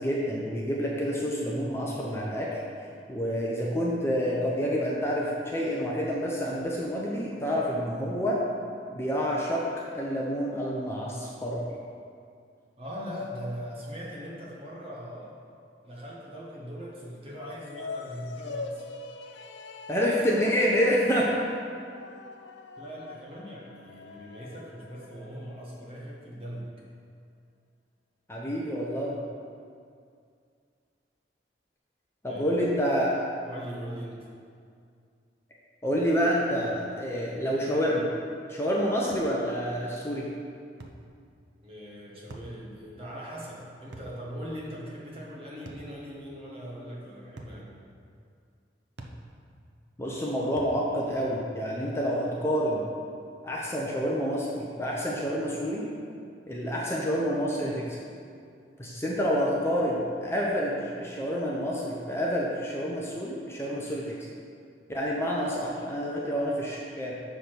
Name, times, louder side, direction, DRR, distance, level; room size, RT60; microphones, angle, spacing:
voice 1, 0.0-2.6 3.1-8.4 8.9-9.6 9.9-11.6 19.9-21.3 28.3-29.2 32.2-33.3 35.8-38.1 38.5-40.3 50.0-52.8 53.4-55.8 56.5-58.0 58.8-64.1 64.9-67.1, equal, 15° left, -4 dB, 0.8 m, -28 dB
voice 2, 12.8-15.4 15.8-18.9 22.8-26.7 32.3-32.6 33.4-34.3 41.6-47.7, equal, 30° right, -5 dB, 1.5 m, -40 dB
sound 1, 17.3-25.8, left 3 dB, 75° left, 0.4 m, -42 dB
sound 2, 39.1-39.3 40.8-41.0 42.3-42.6 43.9-44.2 45.7-45.9 47.4-47.6 49.0-49.2 50.6-50.8, right 1 dB, 75° right, 0.8 m, -43 dB
6.9 x 5.0 x 5.9 m, 2.3 s
head